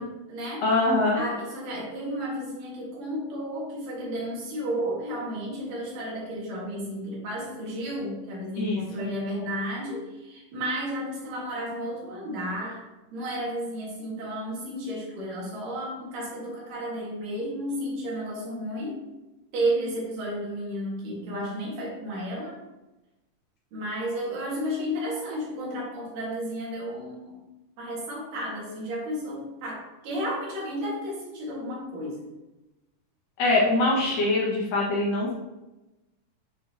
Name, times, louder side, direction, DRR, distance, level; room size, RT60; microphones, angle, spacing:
voice 1, 0.0-0.6 1.1-12.8 13.1-19.0 19.5-22.6 23.7-27.4 27.8-32.2, equal, 75° right, -4 dB, 3.3 m, -32 dB
voice 2, 0.6-1.2 8.6-9.1 33.4-35.3, left 2 dB, 75° left, -4 dB, 3.0 m, -23 dB
8.7 x 4.5 x 2.8 m, 1.0 s
omnidirectional pair, 3.8 m